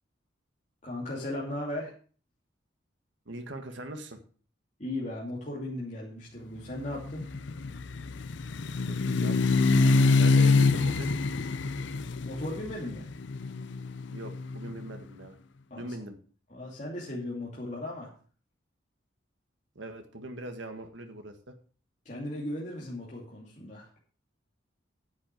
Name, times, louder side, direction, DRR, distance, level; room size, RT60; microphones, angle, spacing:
voice 1, 0.8-1.9 4.8-7.3 12.2-13.0 15.7-16.0 16.5-18.1 22.0-23.9, left 1 dB, 40° left, -5 dB, 2.8 m, -36 dB
voice 2, 3.3-4.2 8.8-9.4 10.2-11.1 14.1-15.4 15.8-16.2 19.8-21.5, right 1 dB, 75° right, 6 dB, 1.7 m, -41 dB
sound 1, 6.8-14.8, left 4 dB, 75° left, 0.6 m, -26 dB
10.0 x 8.0 x 6.1 m, 0.41 s
head